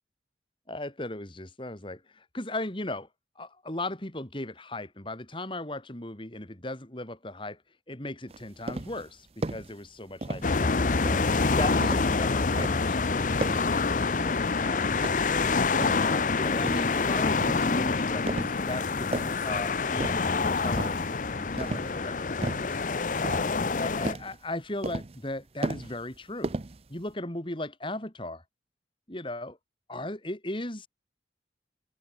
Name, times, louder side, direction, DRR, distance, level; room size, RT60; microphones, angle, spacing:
voice 1, 0.7-3.1 3.4-7.6 7.9-11.2 11.6-13.9 14.6-15.0 15.9-22.7 23.2-23.5 23.8-26.5 26.9-28.4 29.1-29.6 29.9-30.9, left 1 dB, 30° left, 2.9 m, -37 dB
sound 1, 8.3-9.1 9.4-9.7 10.2-10.7 11.1-12.2 12.6-12.9 13.4-13.8 14.2-14.6 15.0-16.1 16.6-17.0 17.4-17.8 18.3-18.7 19.0-19.5 20.0-20.4 20.8-21.2 21.6-22.0 22.4-22.8 23.2-23.8 24.0-24.4 24.8-25.3 25.6-26.2 26.4-27.1, right 2 dB, 35° right, 0.7 m, -35 dB
sound 2, 10.4-24.1, left 4 dB, 45° left, 0.7 m, -26 dB
head